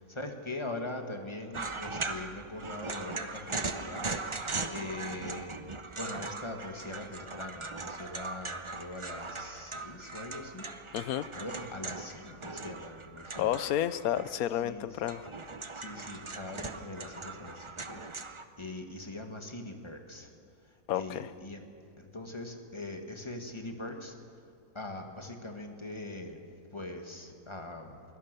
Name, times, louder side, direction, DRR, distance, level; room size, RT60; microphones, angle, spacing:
voice 1, 0.0-5.5 6.0-10.7 11.3-13.6 14.6-14.9 15.7-20.3 20.9-21.6 22.0-24.2 24.7-26.4 26.7-28.0, left 2 dB, 20° left, 3 dB, 1.8 m, -42 dB
sound 1, 1.5-14.6 14.9-18.4, right 3 dB, 30° right, 0.7 m, -39 dB
voice 2, 10.9-11.3 13.4-15.3 20.9-21.3, left 11 dB, 85° left, 15 dB, 1.1 m, -31 dB
23.5 x 17.5 x 6.8 m, 2.5 s
omnidirectional pair, 1.5 m